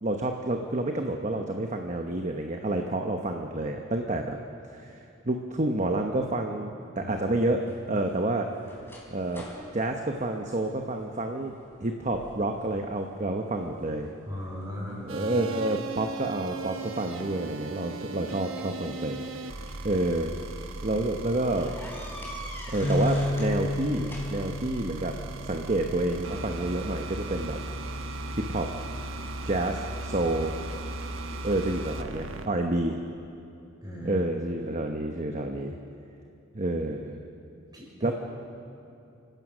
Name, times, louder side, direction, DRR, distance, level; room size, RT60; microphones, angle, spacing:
voice 1, 0.0-4.4 4.7-7.6 7.9-8.5 9.1-9.4 9.7-14.1 15.0-19.2 19.8-20.4 20.8-21.7 22.7-25.2 25.4-27.6 28.3-28.7 29.4-30.5 31.4-33.0 34.0-35.7 36.5-37.2 38.0-38.1, right 2 dB, 35° right, 3 dB, 1.0 m, -29 dB
sound 1, 7.6-11.1 11.5-11.8 12.1-12.8 13.2-14.0 14.6-16.0 17.2-17.3 18.5-19.9 20.4-20.6 20.9-21.0 21.5-23.5 23.8-24.7, equal, 10° left, 3.8 m, -45 dB
voice 2, 14.3-15.1 33.8-34.2 37.7-38.1, left 1 dB, 20° right, -3 dB, 5.6 m, -37 dB
sound 2, 15.1-32.5, right 2 dB, 70° right, 1.0 m, -37 dB
Bass guitar, 22.8-29.1, left 1 dB, 25° left, 1.0 m, -33 dB
28.0 x 16.0 x 6.3 m, 2.7 s
head